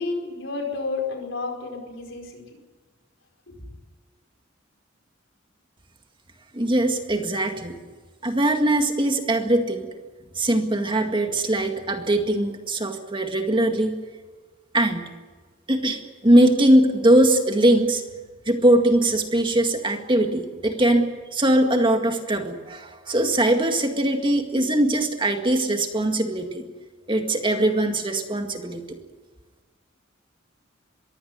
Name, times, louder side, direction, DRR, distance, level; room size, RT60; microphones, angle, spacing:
voice 1, 0.0-2.4 3.5-3.6, left 3 dB, 70° left, 3 dB, 5.0 m, -31 dB
voice 2, 6.5-7.8 8.2-9.9 10.4-14.0 14.7-15.1 15.7-18.0 18.5-26.6 27.1-29.0, right 1 dB, 25° right, 5 dB, 1.9 m, -21 dB
22.5 x 16.0 x 9.5 m, 1.4 s
head